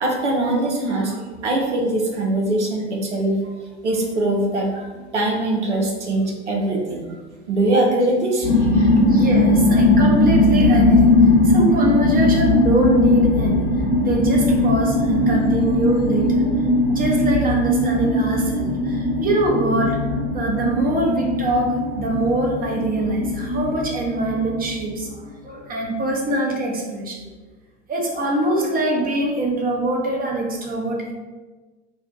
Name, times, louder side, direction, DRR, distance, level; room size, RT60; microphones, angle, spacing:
voice 1, 0.0-3.4 3.8-7.1 7.5-8.9, right 1 dB, 90° right, 0 dB, 0.7 m, -22 dB
sound 1, 8.4-25.0, left 2 dB, 25° left, 0.9 m, -19 dB
voice 2, 9.0-11.1 11.4-13.7 14.0-16.4 16.9-20.0 20.3-27.3 27.9-31.1, right 1 dB, 25° right, 0 dB, 0.7 m, -23 dB
2.7 x 2.2 x 3.7 m, 1.3 s
hypercardioid pair, 80°, 34 cm